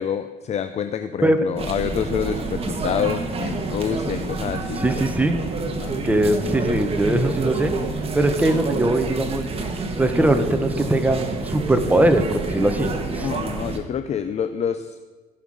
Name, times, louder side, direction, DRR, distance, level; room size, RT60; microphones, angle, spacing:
voice 1, 0.0-5.1 5.7-6.0 8.2-8.3 13.2-15.1, left 8 dB, 40° left, 10 dB, 0.6 m, -27 dB
sound 1, 1.6-13.8, right 3 dB, 35° right, 1.7 m, -28 dB
voice 2, 4.8-5.4 6.0-7.7 8.1-9.4 10.0-13.3, right 1 dB, 10° right, 7 dB, 1.1 m, -20 dB
16.5 x 5.7 x 6.4 m, 1.4 s
cardioid pair, 110°, 17 cm